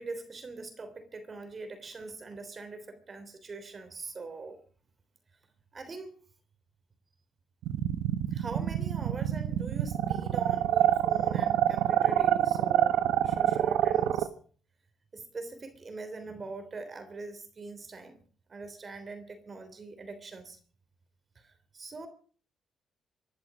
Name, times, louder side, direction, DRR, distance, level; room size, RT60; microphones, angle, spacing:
voice 1, 0.0-4.6 5.7-6.1 8.3-12.9 13.2-14.3 15.1-18.2 18.5-20.6 21.3-22.1, right 3 dB, 35° right, 8 dB, 3.3 m, -42 dB
sound 1, 7.6-14.3, right 11 dB, 85° right, 1.0 m, -26 dB
26.0 x 11.0 x 5.0 m, 0.43 s
cardioid pair, 90°, 0 cm